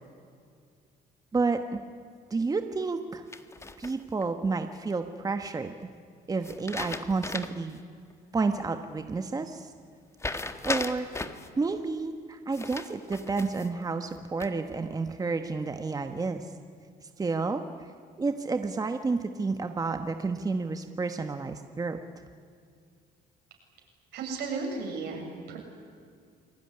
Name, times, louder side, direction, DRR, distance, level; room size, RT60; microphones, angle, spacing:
voice 1, 1.3-1.8 2.3-3.2 3.8-5.9 6.3-7.8 8.3-9.7 10.6-11.1 11.6-16.4 17.2-17.6 18.2-22.0, right 4 dB, 20° right, 7 dB, 1.3 m, -30 dB
sound 1, 3.3-4.2 6.4-7.7 8.1-8.2 10.2-11.5 12.5-13.7 14.1-14.7, left 3 dB, 15° left, 1.5 m, -36 dB
voice 2, 24.1-25.6, right 4 dB, 80° right, 0 dB, 7.6 m, -34 dB
29.0 x 20.0 x 9.8 m, 2.2 s
cardioid pair, 110°, 17 cm